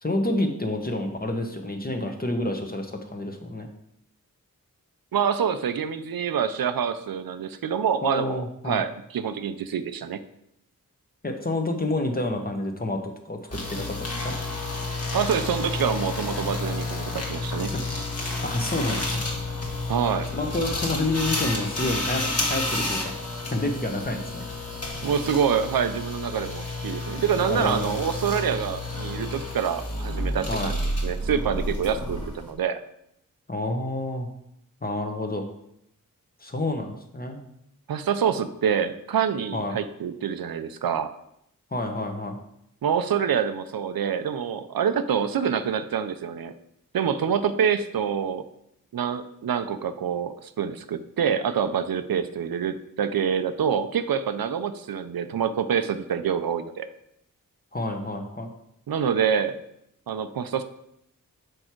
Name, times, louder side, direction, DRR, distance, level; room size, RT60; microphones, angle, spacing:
voice 1, 0.0-3.7 8.0-8.8 11.2-14.4 17.7-17.8 18.4-19.3 20.3-23.1 23.4-24.4 27.5-28.0 30.5-30.7 33.5-34.3 34.8-35.5 36.4-37.4 39.5-39.8 41.7-42.4 57.7-58.5, left 2 dB, 25° left, 4 dB, 1.1 m, -29 dB
voice 2, 5.1-10.2 15.1-17.7 19.9-20.3 25.0-30.8 31.0-32.8 37.9-41.1 42.8-46.5 46.9-48.4 48.9-56.9 58.9-59.6 60.1-60.6, right 7 dB, 80° right, 10 dB, 0.6 m, -26 dB
sound 1, 13.5-32.5, left 2 dB, 45° left, 1.6 m, -30 dB
6.5 x 4.7 x 4.5 m, 0.77 s
wide cardioid pair, 70°, 35 cm